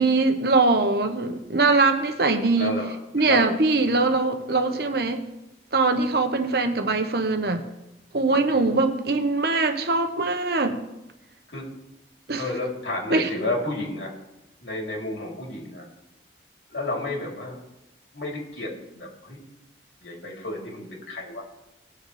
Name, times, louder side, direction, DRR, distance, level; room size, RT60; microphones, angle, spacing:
voice 1, 0.0-2.8 3.1-5.2 5.7-7.6 8.1-10.8 12.3-12.5 13.1-13.3, right 3 dB, 60° right, 7 dB, 1.1 m, -22 dB
voice 2, 2.6-3.5 3.9-4.0 4.5-4.8 11.5-11.6 12.4-14.1 14.6-15.9 16.7-17.6 18.1-19.4 20.0-21.4, left 2 dB, 85° left, -1 dB, 3.1 m, -31 dB
19.0 x 6.8 x 3.3 m, 0.93 s
head